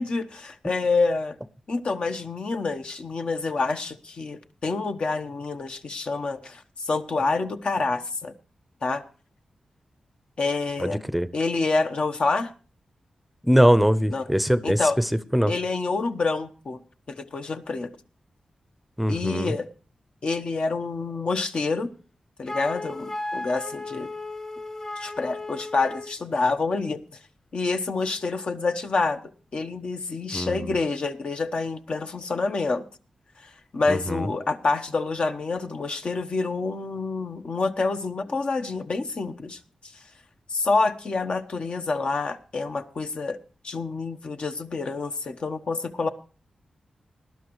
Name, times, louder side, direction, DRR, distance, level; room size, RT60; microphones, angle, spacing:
voice 1, 0.0-1.4 1.7-8.3 8.8-9.0 10.4-11.0 11.3-12.5 14.1-14.3 14.6-15.0 15.5-16.8 17.1-17.9 19.1-19.7 20.2-21.9 22.4-24.1 25.0-27.0 27.5-29.2 29.5-32.8 33.7-39.6 40.5-43.4 43.6-46.1, left 3 dB, 60° left, 6 dB, 1.1 m, -27 dB
voice 2, 10.8-11.3 13.4-15.1 15.3-15.5 19.0-19.5 30.3-30.7 33.9-34.3, equal, 5° right, 14 dB, 0.7 m, -22 dB
Wind instrument woodwind instrument, 22.5-26.2, left 2 dB, 30° left, 1.5 m, -35 dB
19.5 x 11.5 x 3.1 m, 0.38 s
cardioid pair, 65°, 2 cm